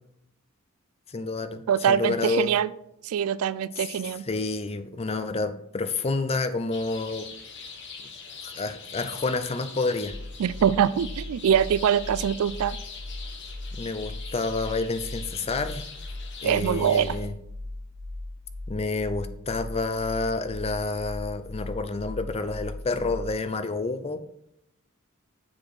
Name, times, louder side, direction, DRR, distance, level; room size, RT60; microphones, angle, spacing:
voice 1, 1.1-2.6 3.8-7.3 8.4-10.2 13.7-15.8 16.4-17.3 18.7-24.2, left 3 dB, 25° left, 10 dB, 0.5 m, -29 dB
voice 2, 1.7-2.7 3.0-4.2 10.4-12.8 16.4-17.2, right 8 dB, 80° right, 18 dB, 0.3 m, -23 dB
sound 1, 6.7-17.3, left 5 dB, 55° left, 1.2 m, -43 dB
sound 2, 10.0-23.4, left 2 dB, 10° left, 2.3 m, -38 dB
7.3 x 4.7 x 4.3 m, 0.75 s
head